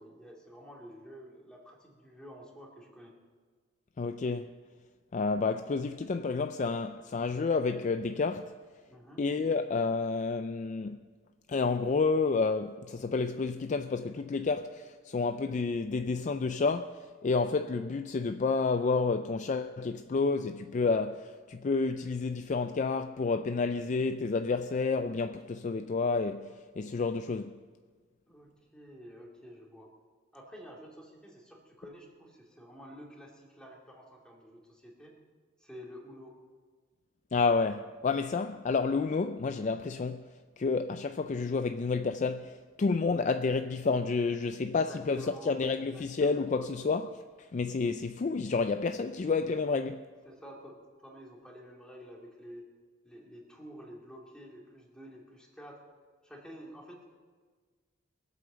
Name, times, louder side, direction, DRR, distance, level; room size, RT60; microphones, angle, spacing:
voice 1, 0.0-3.1 8.9-9.2 28.3-29.9 30.3-35.1 35.6-36.3 38.4-38.5 44.6-45.5 45.9-46.4 50.2-52.6 53.0-55.8 56.2-57.0, equal, 5° left, 2.4 m, -50 dB
voice 2, 4.0-4.5 5.1-8.5 9.2-11.0 11.5-27.6 37.3-40.3 40.6-47.2 47.5-50.0, left 4 dB, 35° left, 0.4 m, -30 dB
22.0 x 8.2 x 6.8 m
head